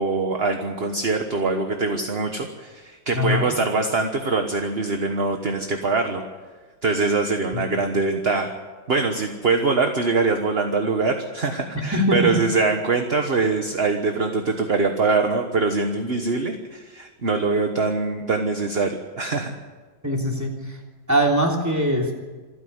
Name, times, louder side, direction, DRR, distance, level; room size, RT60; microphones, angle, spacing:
voice 1, 0.0-6.2 6.8-8.5 8.9-19.5, right 3 dB, 35° right, 5 dB, 1.3 m, -23 dB
voice 2, 3.1-3.5 7.5-7.6 11.9-12.3 20.0-20.8 21.1-22.1, equal, 10° right, 0 dB, 3.1 m, -22 dB
27.0 x 10.0 x 9.6 m, 1.3 s
omnidirectional pair, 2.1 m